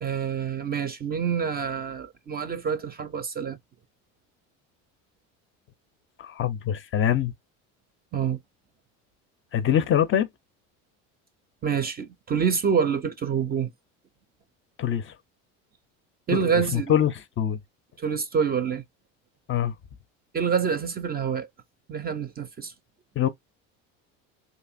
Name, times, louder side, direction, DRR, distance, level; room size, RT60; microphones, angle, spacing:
voice 1, 0.0-3.6 8.1-8.4 11.6-13.7 16.3-16.9 18.0-18.8 20.3-21.5 21.9-22.7, right 7 dB, 25° right, 0.4 m, -27 dB
voice 2, 6.2-7.3 9.5-10.3 14.8-15.1 16.3-17.6 19.5-19.7 23.2-23.3, left 10 dB, 35° left, 0.4 m, -24 dB
2.8 x 2.4 x 2.4 m
supercardioid pair, 85°, 37 cm